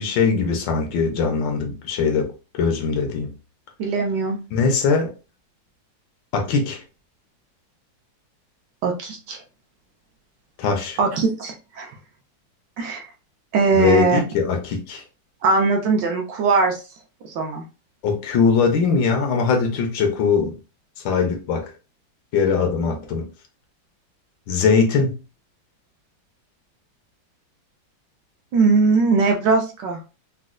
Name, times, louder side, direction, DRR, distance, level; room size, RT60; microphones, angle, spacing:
voice 1, 0.0-2.3 2.5-3.3 4.5-5.1 6.3-6.8 10.6-11.0 13.7-15.0 18.0-20.5 21.0-21.7 22.3-23.3 24.5-25.1, left 5 dB, 70° left, 1.3 m, -21 dB
voice 2, 3.8-4.4 8.8-9.4 11.0-11.9 12.8-13.0 13.5-14.2 15.4-16.8 17.3-17.6 28.5-30.0, right 4 dB, 75° right, 1.1 m, -20 dB
4.1 x 2.2 x 2.4 m
omnidirectional pair, 2.2 m